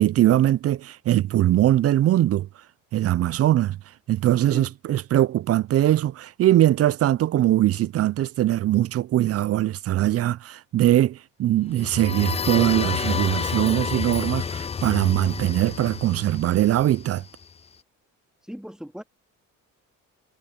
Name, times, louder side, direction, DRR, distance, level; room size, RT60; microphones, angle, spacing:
voice 1, 0.0-2.5 2.9-3.8 4.1-17.2, right 13 dB, 50° right, 0.4 m, -21 dB
sound 1, 11.7-17.4, left 6 dB, 20° left, 0.4 m, -29 dB
voice 2, 18.4-19.0, equal, ahead, 2.9 m, -37 dB
cardioid pair, 95°, 32 cm